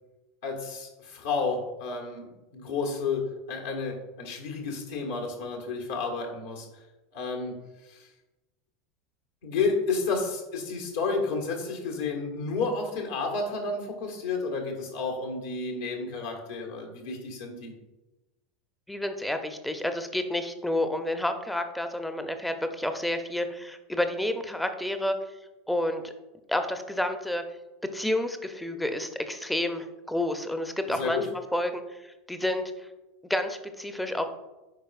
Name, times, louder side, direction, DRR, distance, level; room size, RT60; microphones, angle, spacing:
voice 1, 0.4-6.7 7.1-8.1 9.4-17.7 30.9-31.3, left 4 dB, 65° left, 1 dB, 1.6 m, -31 dB
voice 2, 18.9-25.2 25.7-26.1 26.5-27.4 27.9-31.2 31.5-32.9 33.3-34.3, left 1 dB, 5° left, 7 dB, 0.7 m, -30 dB
10.0 x 4.7 x 2.5 m, 1.0 s
figure-of-eight pair, 80°, 0 cm